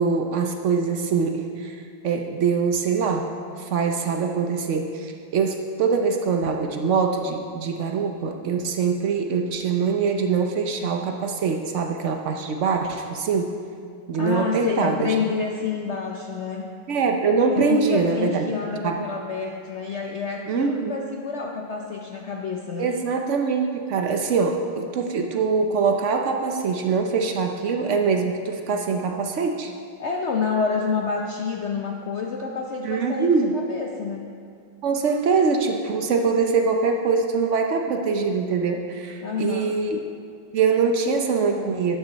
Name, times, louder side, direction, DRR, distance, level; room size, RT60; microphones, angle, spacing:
voice 1, 0.0-3.3 3.6-13.5 14.1-15.1 16.9-18.4 18.8-19.1 20.5-20.9 22.8-29.7 32.8-33.6 34.8-40.0 40.5-42.0, right 5 dB, 80° right, 4 dB, 0.6 m, -23 dB
voice 2, 14.2-16.7 17.5-22.9 30.0-34.3 39.2-39.8, left 5 dB, 85° left, 1 dB, 0.6 m, -28 dB
12.0 x 11.5 x 4.0 m, 2.3 s
omnidirectional pair, 2.2 m